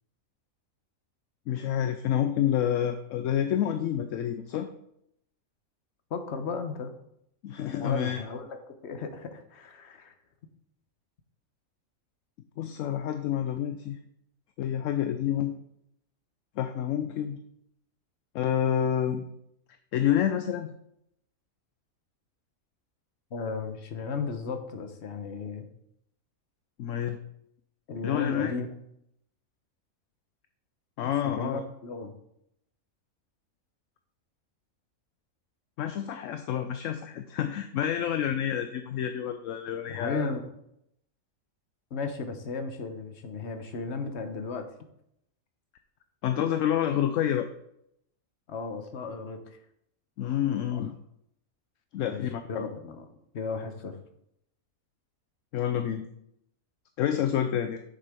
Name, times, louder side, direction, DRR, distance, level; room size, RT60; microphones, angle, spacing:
voice 1, 1.5-4.7 7.4-8.2 12.6-14.0 14.6-15.5 16.6-17.4 18.3-19.2 19.9-20.7 26.8-27.2 28.0-28.5 31.0-31.6 35.8-40.3 46.2-47.5 50.2-51.0 51.9-52.6 55.5-56.1 57.0-57.8, left 10 dB, 70° left, 8 dB, 0.9 m, -28 dB
voice 2, 6.1-6.9 7.8-10.2 23.3-25.7 27.9-28.7 31.0-32.1 39.9-40.5 41.9-44.6 48.5-49.6 52.0-52.2 52.5-53.1 53.3-54.0, left 4 dB, 55° left, 7 dB, 1.2 m, -35 dB
9.0 x 6.6 x 3.6 m, 0.76 s
omnidirectional pair, 1.5 m